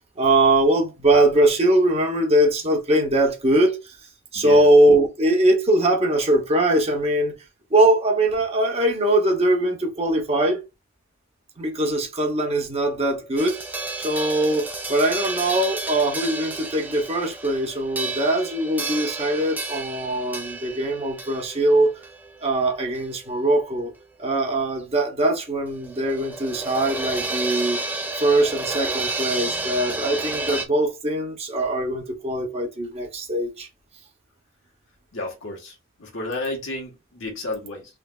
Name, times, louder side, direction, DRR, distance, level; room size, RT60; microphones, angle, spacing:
voice 1, 0.2-4.0 4.3-7.4 7.7-10.6 11.6-13.6 14.0-21.9 22.4-23.9 24.2-27.8 28.2-33.7, right 1 dB, 30° right, 0.9 m, -21 dB
voice 2, 4.3-4.7 35.1-38.0, left 2 dB, 70° left, 1.4 m, -32 dB
sound 1, 13.4-23.3 23.5-23.6 25.7-30.6, right 2 dB, 10° right, 0.5 m, -31 dB
3.3 x 3.2 x 2.4 m
head